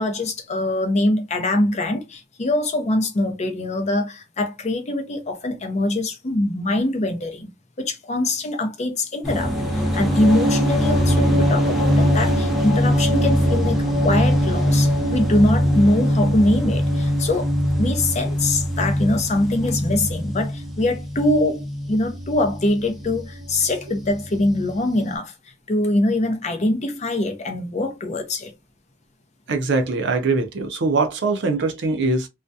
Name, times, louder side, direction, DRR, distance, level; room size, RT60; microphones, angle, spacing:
voice 1, 0.0-7.5 7.8-13.8 14.0-17.5 17.8-25.3 25.7-28.5, left 1 dB, 35° left, 0.5 m, -23 dB
sound 1, 9.2-25.1, equal, ahead, 0.7 m, -22 dB
voice 2, 29.5-32.3, right 3 dB, 65° right, 0.5 m, -22 dB
2.3 x 2.1 x 2.6 m
head